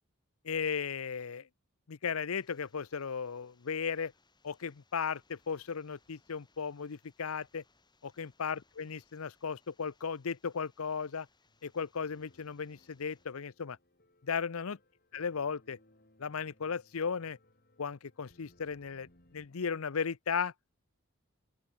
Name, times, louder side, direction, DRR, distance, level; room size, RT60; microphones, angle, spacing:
voice 1, 0.4-1.5 1.9-4.1 4.4-7.6 8.0-11.3 11.6-13.8 14.2-14.8 15.1-15.8 16.2-17.4 17.8-19.1 19.3-20.5, left 6 dB, 90° left, 0.7 m, -36 dB
sound 1, 2.4-13.3, left 3 dB, 20° left, 5.8 m, -71 dB
sound 2, 11.5-19.5, left 1 dB, 45° left, 6.5 m, -66 dB
open air
head